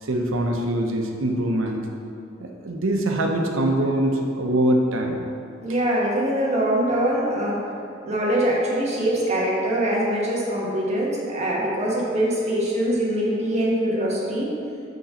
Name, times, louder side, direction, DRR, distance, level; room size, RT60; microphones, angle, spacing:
voice 1, 0.0-1.8 2.4-5.2, right 1 dB, 90° right, 2 dB, 0.8 m, -23 dB
voice 2, 5.6-7.6 8.0-14.5, right 1 dB, 35° right, -4 dB, 1.2 m, -23 dB
5.4 x 3.9 x 5.5 m, 2.6 s
head